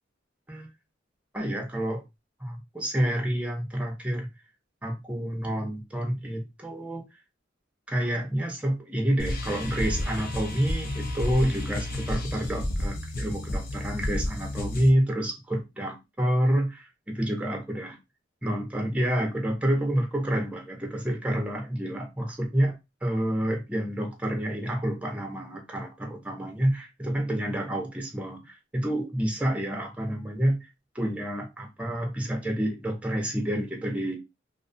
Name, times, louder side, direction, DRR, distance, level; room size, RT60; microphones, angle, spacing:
voice 1, 1.3-2.0 2.4-4.3 4.8-7.0 7.9-18.0 18.4-30.6 30.9-34.2, right 1 dB, 5° right, 0.6 m, -28 dB
sound 1, 9.2-14.9, left 1 dB, 50° left, 0.5 m, -31 dB
2.4 x 2.3 x 2.5 m
head